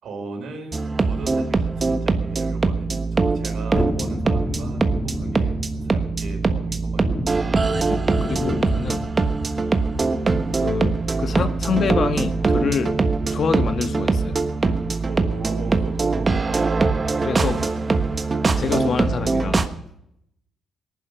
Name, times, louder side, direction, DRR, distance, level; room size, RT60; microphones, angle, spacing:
voice 1, 0.0-7.7 15.0-17.7, right 3 dB, 70° right, 4 dB, 4.0 m, -38 dB
sound 1, 0.7-19.7, right 3 dB, 30° right, 1.3 m, -22 dB
Thunderstorm, 3.7-14.0 14.3-14.4, left 2 dB, 25° left, 1.6 m, -33 dB
voice 2, 7.9-9.0 10.5-12.9 13.3-14.4 17.2-17.6 18.6-19.6, left 6 dB, 55° left, 8 dB, 1.5 m, -26 dB
19.0 x 11.0 x 5.7 m, 0.78 s
cardioid pair, 90°, 0 cm